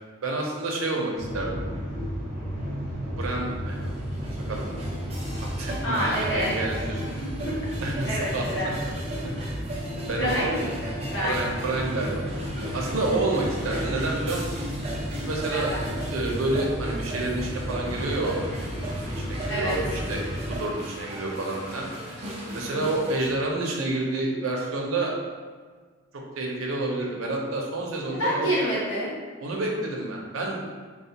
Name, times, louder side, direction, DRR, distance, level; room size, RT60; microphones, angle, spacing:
voice 1, 0.2-1.6 3.2-3.8 4.5-4.6 5.4-7.0 7.8-8.7 10.1-10.5 11.2-12.2 12.7-14.5 15.1-15.7 16.1-18.4 18.9-21.9 22.5-25.1 26.4-28.5 29.4-30.7, right 2 dB, 90° right, -1 dB, 0.6 m, -29 dB
sound 1, 1.2-20.6, equal, 20° left, 1.5 m, -33 dB
sound 2, 3.4-23.3, right 1 dB, 30° right, 0.5 m, -39 dB
voice 2, 5.8-6.6 7.2-7.3 7.6-7.8 8.0-8.7 9.2-9.4 10.2-11.4 15.5-15.8 19.5-19.7 28.1-29.1, equal, 65° left, -8 dB, 1.2 m, -28 dB
sound 3, 17.9-23.5, left 1 dB, 5° left, 1.1 m, -44 dB
3.5 x 2.3 x 2.8 m, 1.5 s
head